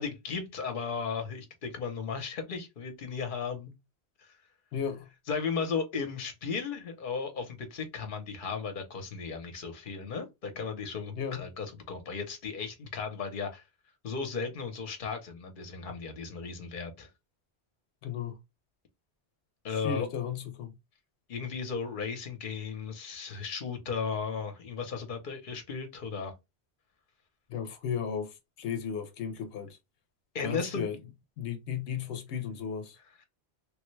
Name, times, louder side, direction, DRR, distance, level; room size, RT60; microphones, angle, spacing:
voice 1, 0.0-3.7 4.3-4.4 5.3-13.6 14.0-17.1 19.6-20.1 21.3-26.3 30.3-30.8 33.0-33.2, left 5 dB, 55° left, 0.9 m, -35 dB
voice 2, 4.7-5.1 11.2-11.5 18.0-18.4 19.7-20.7 27.5-29.8 30.4-31.0 31.4-33.0, left 7 dB, 85° left, 0.9 m, -35 dB
3.3 x 2.2 x 3.1 m
omnidirectional pair, 1.1 m